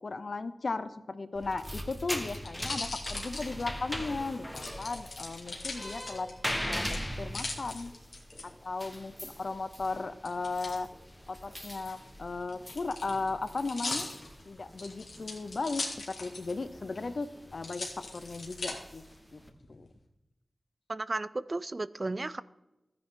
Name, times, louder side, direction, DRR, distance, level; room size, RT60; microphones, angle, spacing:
voice 1, 0.0-6.3 6.7-7.9 8.4-10.9 11.3-14.1 14.5-19.0 19.3-19.4 19.7-19.9, left 3 dB, 60° left, 12 dB, 0.7 m, -36 dB
sound 1, 1.4-19.5, equal, 10° left, 1.3 m, -41 dB
sound 2, 1.6-4.0 4.6-6.5 6.9-8.4 10.2-10.8 11.7-16.6 16.9-17.0 17.6-18.7 19.4-19.9, left 3 dB, 75° left, 2.5 m, -40 dB
voice 2, 20.9-22.4, right 2 dB, 40° right, 17 dB, 0.4 m, -34 dB
13.5 x 9.9 x 3.8 m, 0.97 s
wide cardioid pair, 75°, 0 cm